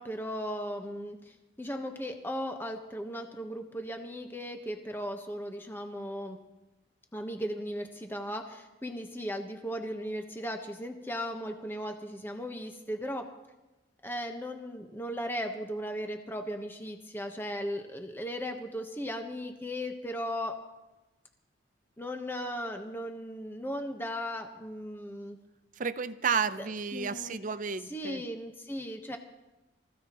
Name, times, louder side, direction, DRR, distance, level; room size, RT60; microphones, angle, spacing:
voice 1, 0.0-6.4 7.1-13.3 14.0-20.6 22.0-25.4 26.6-27.4 27.9-29.2, equal, 10° left, 4 dB, 1.2 m, -37 dB
voice 2, 25.8-28.2, right 6 dB, 45° right, 12 dB, 0.6 m, -32 dB
24.5 x 15.5 x 3.1 m, 1.0 s
head